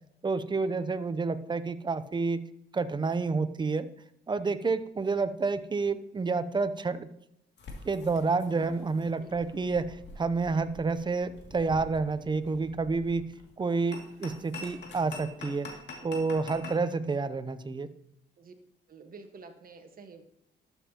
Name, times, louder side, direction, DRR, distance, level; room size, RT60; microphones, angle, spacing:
voice 1, 0.2-2.4 2.7-3.9 4.3-7.1 7.8-13.2 13.6-15.7 16.0-17.9, right 4 dB, 25° right, 13 dB, 0.6 m, -29 dB
sound 1, 7.6-16.8, left 3 dB, 60° left, 2.4 m, -46 dB
voice 2, 18.9-20.2, right 4 dB, 45° right, 6 dB, 1.4 m, -49 dB
12.0 x 7.4 x 2.9 m, 0.79 s
cardioid pair, 90°, 20 cm